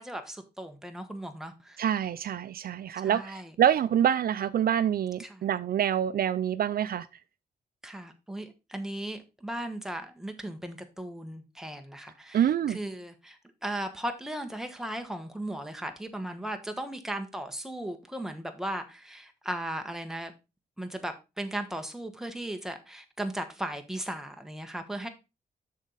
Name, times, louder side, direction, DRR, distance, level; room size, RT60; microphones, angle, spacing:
voice 1, 0.0-1.8 2.9-3.5 5.2-5.5 7.8-20.3 20.8-25.1, right 1 dB, 5° right, 1.3 m, -37 dB
voice 2, 1.8-7.1 12.3-12.8, right 10 dB, 65° right, 0.4 m, -26 dB
7.4 x 6.2 x 4.0 m
wide cardioid pair, 120°, 17 cm